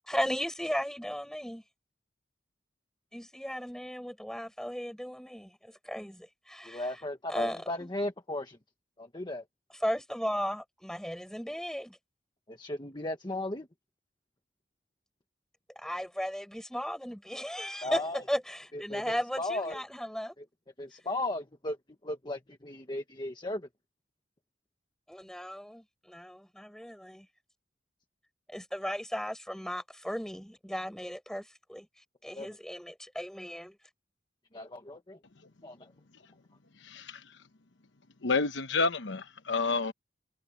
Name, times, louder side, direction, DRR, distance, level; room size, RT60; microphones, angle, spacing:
voice 1, 0.1-1.6 3.1-6.9 7.3-7.9 9.8-12.0 15.8-20.4 25.1-27.3 28.5-31.9 32.2-33.7, equal, 5° left, 7.5 m, -36 dB
voice 2, 6.6-8.6 9.0-9.4 12.5-13.7 17.8-18.2 18.7-19.8 20.4-20.5 20.8-21.8 22.0-23.7 32.4-32.5 34.5-35.2 35.6-35.8, left 1 dB, 25° left, 1.4 m, -36 dB
voice 3, 36.8-37.2 38.2-39.9, left 4 dB, 75° left, 1.0 m, -29 dB
head